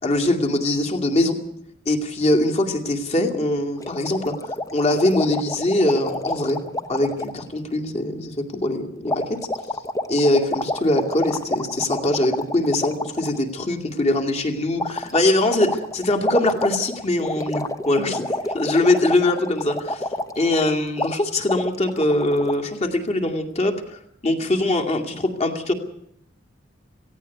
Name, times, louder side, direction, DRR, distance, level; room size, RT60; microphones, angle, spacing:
voice 1, 0.0-1.4 1.9-6.6 6.9-9.4 10.1-20.0 20.4-25.7, left 1 dB, 35° left, 5 dB, 2.3 m, -22 dB
sound 1, 3.8-7.4 9.1-13.4 14.8-20.7 21.0-21.1 21.5-22.5, left 1 dB, 20° left, 1.0 m, -28 dB
17.5 x 16.0 x 9.4 m, 0.73 s
head